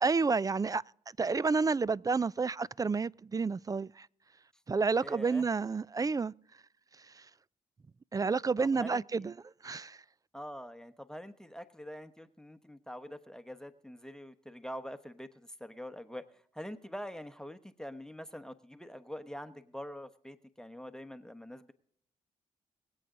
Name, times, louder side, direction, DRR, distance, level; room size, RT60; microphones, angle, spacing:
voice 1, 0.0-0.8 1.2-4.1 4.7-6.3 8.1-9.3 9.6-10.0, right 4 dB, 25° right, 0.4 m, -30 dB
voice 2, 5.0-5.5 8.6-9.3 10.3-21.7, equal, 5° left, 1.0 m, -45 dB
23.0 x 7.9 x 3.8 m
supercardioid pair, 55°, 14 cm